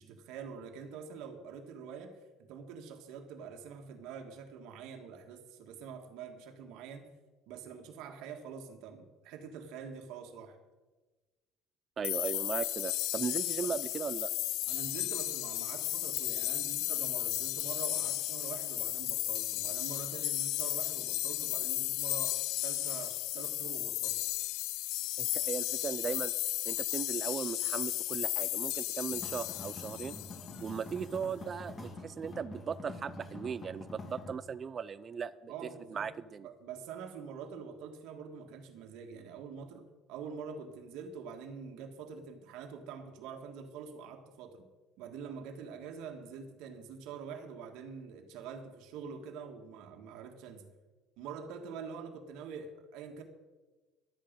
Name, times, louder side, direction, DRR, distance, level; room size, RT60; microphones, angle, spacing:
voice 1, 0.0-7.1 7.5-10.6 13.6-13.7 14.7-24.2 35.5-36.1 36.4-44.7 45.0-50.7 51.2-53.2, right 6 dB, 75° right, 4 dB, 1.6 m, -45 dB
sound 1, 12.0-30.7, left 16 dB, 75° left, 0.6 m, -34 dB
voice 2, 12.0-14.3 25.2-26.3 26.7-30.2 30.6-35.5 35.9-36.5, right 6 dB, 30° right, 14 dB, 0.4 m, -37 dB
sound 2, 29.1-34.3, left 2 dB, 25° left, 2.4 m, -46 dB
12.0 x 9.0 x 7.4 m, 1.2 s
cardioid pair, 140°, 0 cm